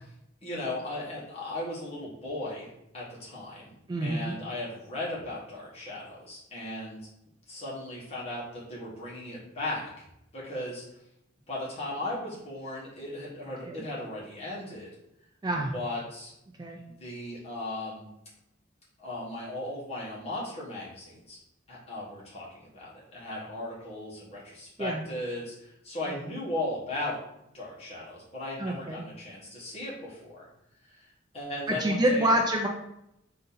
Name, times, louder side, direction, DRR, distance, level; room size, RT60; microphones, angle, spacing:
voice 1, 0.4-7.0 7.5-9.9 10.3-10.8 11.5-14.9 15.5-16.3 16.8-18.0 19.0-21.4 21.7-27.2 27.5-30.5 30.9-31.1 31.3-32.3, left 1 dB, 30° left, -6 dB, 1.4 m, -37 dB
voice 2, 3.9-4.4 13.7-13.8 15.4-15.7 16.6-16.8 24.8-25.0 26.1-26.2 28.6-29.0 31.7-32.7, right 1 dB, 20° right, 1 dB, 0.3 m, -27 dB
3.8 x 2.7 x 3.8 m, 0.82 s
head